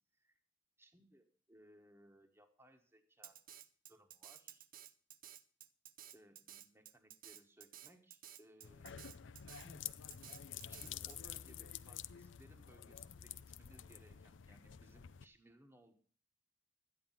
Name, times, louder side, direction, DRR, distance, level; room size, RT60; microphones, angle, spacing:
voice 1, 0.8-3.4 3.9-4.6 6.1-9.1 9.6-9.9 10.7-15.9, equal, 15° right, 4 dB, 1.3 m, -64 dB
Drum kit, 3.2-11.2, right 11 dB, 50° right, 0.7 m, -55 dB
sound 1, 8.6-15.3, left 10 dB, 80° left, 0.5 m, -50 dB
12.5 x 9.3 x 5.6 m, 0.43 s
head